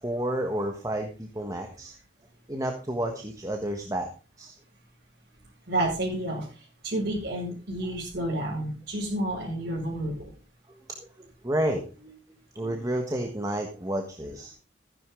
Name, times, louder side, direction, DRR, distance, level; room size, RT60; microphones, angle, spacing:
voice 1, 0.0-1.9 2.5-4.1 4.4-4.6 11.0-12.1 12.5-14.5, right 1 dB, 15° right, 3 dB, 1.4 m, -31 dB
voice 2, 5.7-6.5 6.8-10.3, right 1 dB, 50° right, -6 dB, 6.6 m, -30 dB
15.0 x 10.5 x 3.9 m, 0.34 s
head